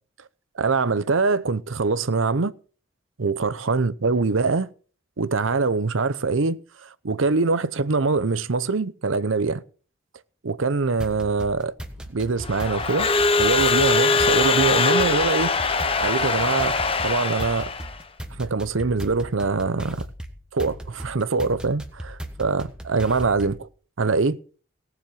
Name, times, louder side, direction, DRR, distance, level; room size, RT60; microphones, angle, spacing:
voice 1, 0.5-2.5 3.2-4.7 5.2-9.6 10.4-11.7 12.1-13.1 13.4-15.5 16.0-16.8 17.0-17.7 18.3-20.1 20.5-23.7 24.0-24.4, right 4 dB, 80° right, 0.7 m, -23 dB
sound 1, 11.0-23.7, right 1 dB, 5° right, 1.3 m, -38 dB
Crowd / Alarm, 12.4-18.0, left 4 dB, 30° left, 0.9 m, -22 dB
18.0 x 7.2 x 5.8 m
head